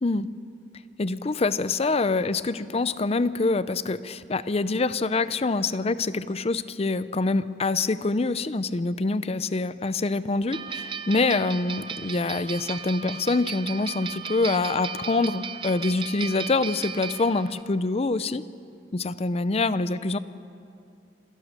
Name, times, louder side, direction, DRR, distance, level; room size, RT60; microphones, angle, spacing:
voice 1, 1.0-18.4 18.9-20.2, left 3 dB, 35° left, 15 dB, 0.6 m, -25 dB
sound 1, 10.5-17.6, right 7 dB, 30° right, 0.6 m, -36 dB
26.5 x 17.0 x 6.6 m, 2.5 s
head